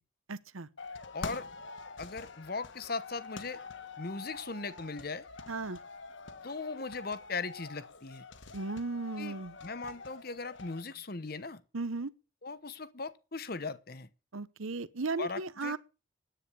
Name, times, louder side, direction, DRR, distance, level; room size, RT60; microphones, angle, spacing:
voice 1, 0.3-0.7 5.5-5.8 8.5-9.5 11.7-12.1 14.3-15.8, right 3 dB, 85° right, 1.0 m, -36 dB
sound 1, 0.8-10.8, left 4 dB, 65° left, 1.3 m, -46 dB
voice 2, 1.1-1.5 2.0-3.6 4.0-5.2 6.4-8.2 9.2-11.6 12.4-14.1 15.2-15.7, left 4 dB, 45° left, 1.0 m, -39 dB
10.0 x 8.9 x 8.6 m
head